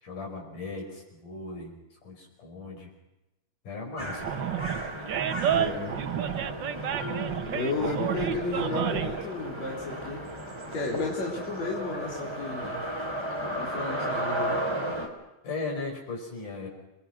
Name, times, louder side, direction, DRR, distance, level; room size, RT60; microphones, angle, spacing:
voice 1, 0.0-1.7 2.0-2.9 3.7-4.3 15.4-16.7, left 3 dB, 80° left, 0 dB, 7.1 m, -37 dB
sound 1, 4.0-15.1, right 1 dB, 10° right, 3.3 m, -35 dB
Animal, 4.2-9.2, right 9 dB, 70° right, 1.0 m, -30 dB
voice 2, 5.5-6.0 7.5-10.2 10.7-12.8 13.6-14.6, left 3 dB, 60° left, -2 dB, 4.9 m, -33 dB
Marimba xylophone, 7.0-8.8, left 9 dB, 15° left, 5.0 m, -44 dB
29.0 x 21.5 x 6.2 m, 0.99 s
omnidirectional pair, 3.6 m